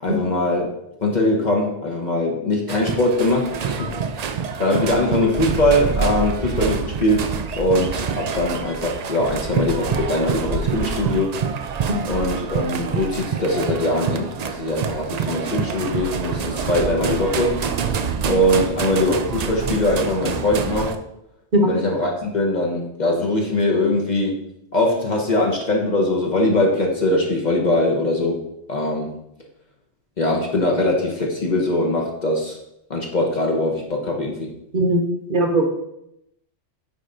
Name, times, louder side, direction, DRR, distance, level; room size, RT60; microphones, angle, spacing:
voice 1, 0.0-0.7 1.0-11.4 12.0-18.0 18.2-21.0 21.6-24.4 24.7-29.1 30.2-32.6 32.9-34.5, left 1 dB, 40° left, 0 dB, 0.9 m, -22 dB
Demonstrators against monsanto, 2.7-20.9, right 6 dB, 70° right, 0.4 m, -26 dB
voice 2, 35.3-35.7, right 1 dB, 45° right, 2 dB, 1.1 m, -18 dB
9.1 x 3.3 x 3.8 m, 0.83 s
omnidirectional pair, 1.2 m